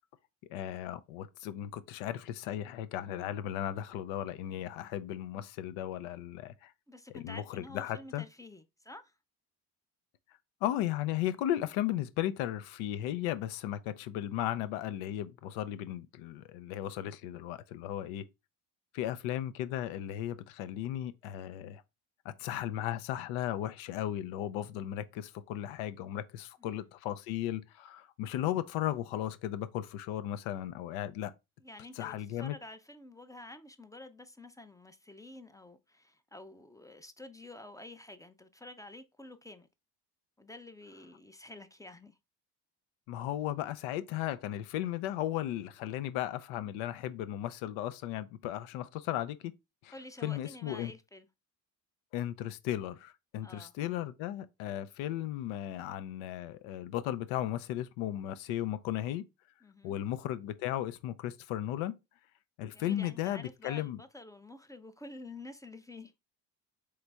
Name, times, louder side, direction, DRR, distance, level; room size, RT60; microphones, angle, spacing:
voice 1, 0.5-6.7 7.2-8.2 10.6-18.2 18.9-21.8 22.2-31.3 32.0-32.6 43.1-49.5 49.8-49.9 50.2-50.9 52.1-59.2 59.8-62.0 62.6-64.0, left 12 dB, 75° left, 0.6 m, -35 dB
voice 2, 6.9-9.1 26.6-26.8 31.6-39.7 40.4-42.2 49.9-51.3 53.4-53.7 59.6-60.0 62.7-66.1, left 2 dB, 5° left, 0.5 m, -49 dB
3.9 x 3.2 x 3.4 m
hypercardioid pair, 60°, 49 cm